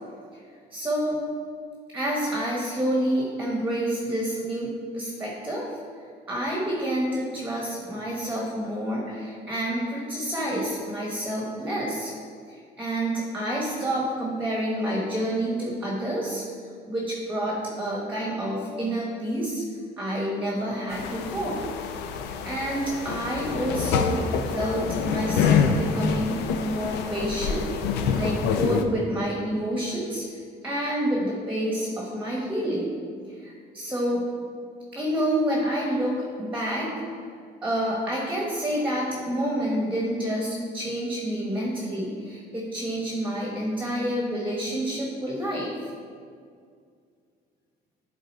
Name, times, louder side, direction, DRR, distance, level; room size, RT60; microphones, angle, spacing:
voice 1, 0.7-1.3 1.9-5.7 6.3-12.1 12.5-16.4 16.9-19.6 20.0-21.6 22.4-27.6 28.1-30.2 30.6-32.9 33.4-34.2 34.9-36.9 37.6-45.9, right 1 dB, 10° right, -3 dB, 1.2 m, -28 dB
sound 1, 20.9-28.8, left 6 dB, 90° left, 0.5 m, -26 dB
9.3 x 3.7 x 4.3 m, 2.2 s
cardioid pair, 110°, 17 cm